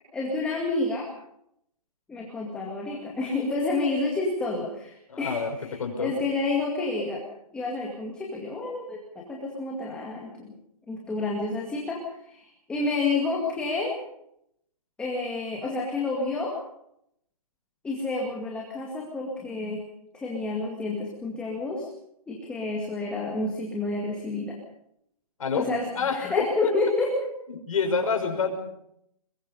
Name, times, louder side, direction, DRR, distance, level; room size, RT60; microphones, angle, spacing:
voice 1, 0.1-1.1 2.1-5.7 6.0-7.2 7.5-10.5 10.9-12.0 12.2-14.0 15.0-16.5 17.8-19.8 20.1-21.9 22.3-24.6 25.5-27.1, left 3 dB, 5° left, -2 dB, 2.2 m, -29 dB
voice 2, 5.1-5.5 5.8-6.1 25.4-25.7 25.9-26.7 27.5-28.6, left 5 dB, 60° left, 3 dB, 5.8 m, -27 dB
22.5 x 21.5 x 5.5 m, 0.77 s
hypercardioid pair, 165°, 20 cm